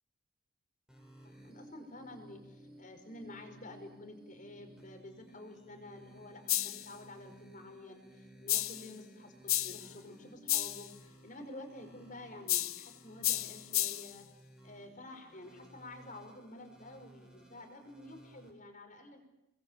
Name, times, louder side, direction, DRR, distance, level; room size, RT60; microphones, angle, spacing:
sound 1, 0.9-18.5, right 1 dB, 5° right, 5.4 m, -57 dB
voice 1, 1.2-14.2 14.6-19.2, left 1 dB, 35° left, 5 dB, 5.3 m, -50 dB
sound 2, 6.5-6.9 8.5-8.9 9.5-9.9 10.5-10.9 12.5-12.9 13.2-14.1, left 16 dB, 80° left, 1.2 m, -32 dB
30.0 x 21.5 x 8.9 m, 0.90 s
head